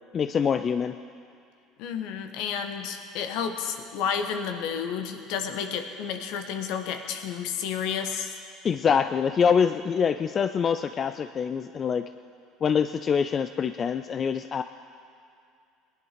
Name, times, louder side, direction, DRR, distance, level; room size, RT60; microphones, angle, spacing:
voice 1, 0.1-0.9 8.6-12.1 12.6-14.6, left 7 dB, 40° left, 10 dB, 0.4 m, -25 dB
voice 2, 1.8-8.4, left 7 dB, 70° left, 6 dB, 1.2 m, -31 dB
19.0 x 11.0 x 5.2 m, 2.4 s
hypercardioid pair, 80°, 0 cm